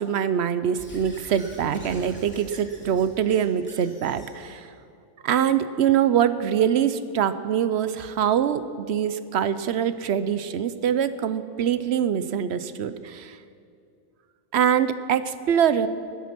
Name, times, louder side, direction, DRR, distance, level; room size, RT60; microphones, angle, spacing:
voice 1, 0.0-4.7 5.2-13.4 14.5-15.9, right 9 dB, 65° right, 13 dB, 0.9 m, -24 dB
Squeak / Writing, 0.8-4.5, left 1 dB, 10° left, 3.1 m, -44 dB
20.5 x 9.5 x 6.0 m, 2.4 s
omnidirectional pair, 1.3 m